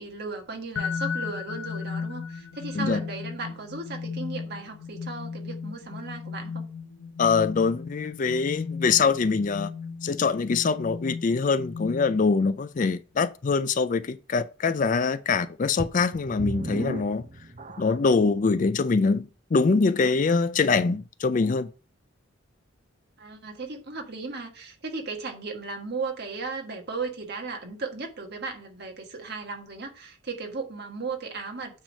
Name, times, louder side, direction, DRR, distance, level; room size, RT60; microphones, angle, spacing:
voice 1, 0.0-6.6 23.2-31.8, right 4 dB, 50° right, 1.5 m, -36 dB
sound 1, 0.8-12.5, left 5 dB, 65° left, 0.7 m, -35 dB
voice 2, 7.2-9.7 10.0-17.3 17.8-21.7, left 4 dB, 40° left, 0.4 m, -24 dB
sound 2, 15.8-18.2 18.9-19.0 19.6-19.7, right 2 dB, 35° right, 0.6 m, -35 dB
8.8 x 3.5 x 5.3 m
head